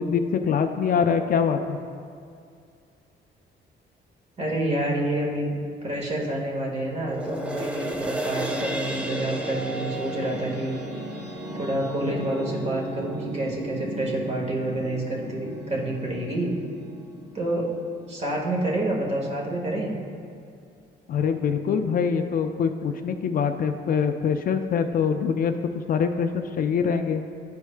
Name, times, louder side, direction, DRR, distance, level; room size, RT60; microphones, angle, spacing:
voice 1, 0.0-1.8 21.1-27.2, left 6 dB, 50° left, 7 dB, 0.4 m, -24 dB
voice 2, 4.4-5.6 5.8-10.7 11.5-16.5 17.3-17.7 18.1-19.9, right 1 dB, 35° right, -2 dB, 1.5 m, -28 dB
sound 1, 6.9-13.5 14.0-14.1, right 1 dB, 5° right, 0.6 m, -34 dB
sound 2, 8.5-19.1, right 1 dB, 75° right, 1.0 m, -37 dB
12.0 x 4.7 x 2.2 m, 2.4 s
cardioid pair, 115°, 18 cm